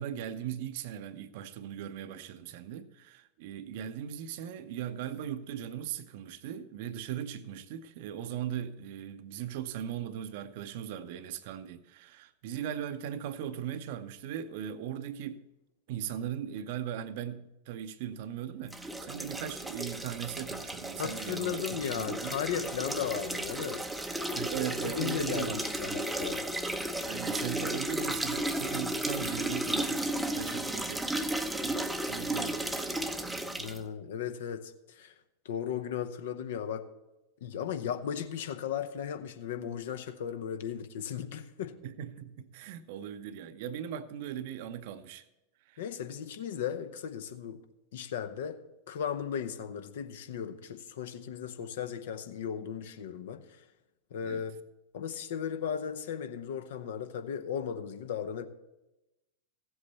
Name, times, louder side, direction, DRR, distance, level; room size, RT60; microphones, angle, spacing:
voice 1, 0.0-15.4 15.9-22.4 24.3-26.1 27.0-33.1 41.8-45.2 45.7-45.8 54.2-54.4, right 10 dB, 50° right, 0.7 m, -39 dB
sound 1, 18.7-33.8, right 1 dB, 5° right, 0.7 m, -34 dB
voice 2, 21.0-23.9 24.8-26.4 33.6-35.1 35.4-36.9 37.4-41.7 45.8-47.6 47.9-48.6 48.9-53.6 54.1-54.6 54.9-58.5, left 8 dB, 55° left, 0.9 m, -36 dB
15.5 x 8.0 x 4.2 m
figure-of-eight pair, 90°, 0 cm